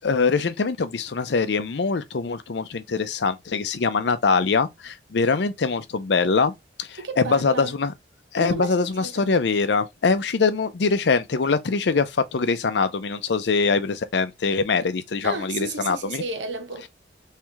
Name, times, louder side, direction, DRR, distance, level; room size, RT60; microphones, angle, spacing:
voice 1, 0.0-7.9 8.3-16.2, left 4 dB, 70° left, 0.5 m, -23 dB
voice 2, 7.0-7.8 8.4-9.3 15.2-16.9, right 3 dB, 85° right, 0.9 m, -33 dB
3.2 x 3.1 x 3.5 m
head